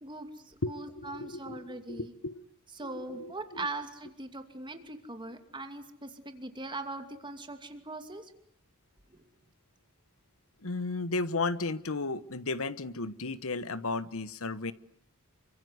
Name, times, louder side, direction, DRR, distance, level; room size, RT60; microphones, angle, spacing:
voice 1, 0.0-2.1 2.8-8.3 9.1-9.3, right 2 dB, 20° right, 7 dB, 2.6 m, -41 dB
voice 2, 0.6-2.4 2.8-3.7 10.6-14.7, left 3 dB, 70° left, 15 dB, 1.3 m, -34 dB
28.0 x 24.5 x 8.0 m, 0.65 s
head